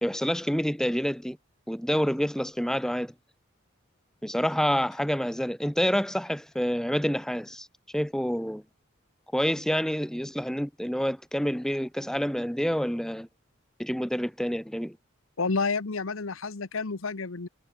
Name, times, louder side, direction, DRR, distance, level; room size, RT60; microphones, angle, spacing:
voice 1, 0.0-1.4 1.7-3.1 4.2-7.7 7.9-8.6 9.3-13.3 13.8-15.0, equal, 5° left, 1.6 m, -28 dB
voice 2, 15.4-17.5, left 4 dB, 80° left, 1.0 m, -30 dB
head